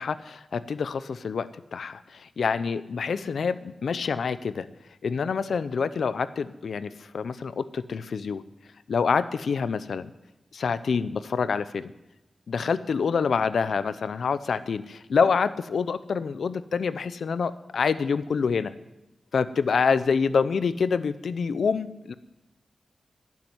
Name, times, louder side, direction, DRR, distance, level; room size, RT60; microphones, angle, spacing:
voice 1, 0.0-4.7 5.0-8.4 8.9-10.1 10.5-11.9 12.5-18.7 19.3-22.1, left 5 dB, 85° left, 14 dB, 0.6 m, -27 dB
16.5 x 7.6 x 9.4 m, 0.96 s
wide cardioid pair, 150°, 0 cm